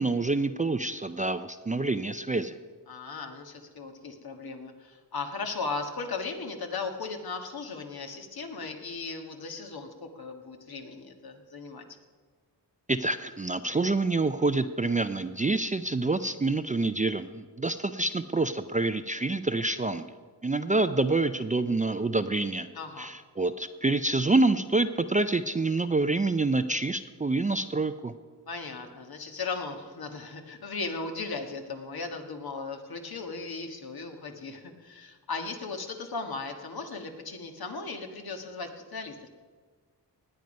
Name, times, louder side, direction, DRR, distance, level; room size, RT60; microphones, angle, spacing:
voice 1, 0.0-2.5 12.9-20.1 20.4-22.7 23.0-28.1, right 3 dB, 20° right, 10 dB, 0.4 m, -27 dB
voice 2, 2.9-11.8 22.7-23.1 28.5-39.3, left 4 dB, 65° left, 5 dB, 1.5 m, -37 dB
19.0 x 9.0 x 5.3 m, 1.5 s
wide cardioid pair, 100°, 40 cm